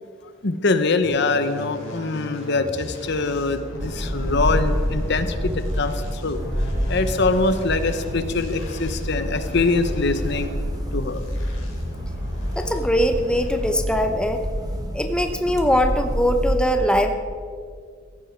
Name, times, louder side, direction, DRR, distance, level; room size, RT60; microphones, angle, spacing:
voice 1, 0.4-6.4 6.9-10.5 10.9-11.2, left 3 dB, 60° left, 10 dB, 0.9 m, -23 dB
sound 1, 1.0-14.0, left 1 dB, 80° left, 4.5 m, -36 dB
sound 2, 3.8-16.6, equal, 20° right, 1.3 m, -28 dB
voice 2, 12.6-14.4 14.9-17.2, equal, 5° left, 5 dB, 0.8 m, -21 dB
16.5 x 14.5 x 4.6 m, 2.1 s
head